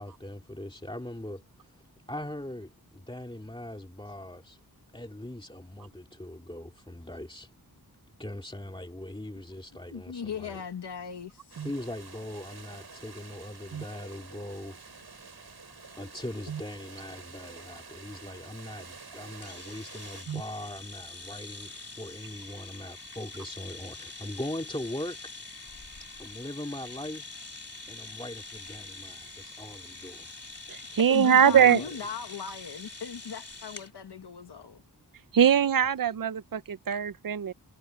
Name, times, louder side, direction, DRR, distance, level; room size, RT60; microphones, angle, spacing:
voice 1, 0.0-4.6 4.9-7.5 8.2-10.6 11.6-14.8 16.0-25.2 26.2-27.2 27.9-30.4 31.5-31.9, left 1 dB, 15° left, 2.4 m, -40 dB
voice 2, 9.9-11.7 31.1-34.8, left 6 dB, 85° left, 1.4 m, -38 dB
sound 1, 11.5-20.3, right 4 dB, 75° right, 8.0 m, -48 dB
sound 2, 19.4-33.9, left 3 dB, 35° left, 2.4 m, -45 dB
voice 3, 30.7-31.8 35.3-37.5, right 8 dB, 60° right, 0.7 m, -22 dB
wide cardioid pair, 95°, 39 cm